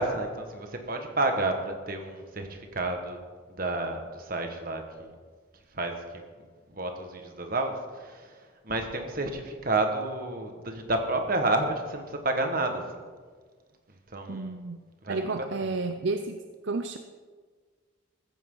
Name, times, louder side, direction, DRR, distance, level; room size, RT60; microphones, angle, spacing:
voice 1, 0.0-3.2 3.5-5.1 5.7-6.2 6.7-13.0 14.1-14.6 15.0-15.7, right 2 dB, 45° right, 4 dB, 1.6 m, -30 dB
voice 2, 14.3-14.8 15.1-17.0, right 3 dB, 65° right, 8 dB, 0.6 m, -31 dB
15.0 x 14.5 x 3.9 m, 1.5 s
head